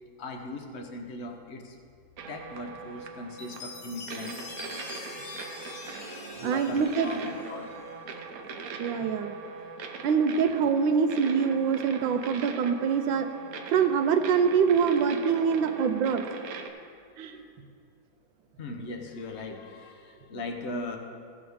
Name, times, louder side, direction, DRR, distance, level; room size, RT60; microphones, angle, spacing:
voice 1, 0.2-1.8 2.3-7.8 17.3-17.5 18.6-21.0, left 2 dB, 45° left, 3 dB, 1.0 m, -39 dB
sound 1, 2.2-16.7, right 5 dB, 60° right, 1.1 m, -41 dB
Chime, 3.4-8.0, left 3 dB, 85° left, 2.1 m, -44 dB
voice 2, 6.4-7.1 8.8-9.3 10.0-13.3 13.7-16.2 17.2-17.4, right 6 dB, 85° right, 8 dB, 1.4 m, -24 dB
16.0 x 7.0 x 3.6 m, 2.2 s
omnidirectional pair, 2.0 m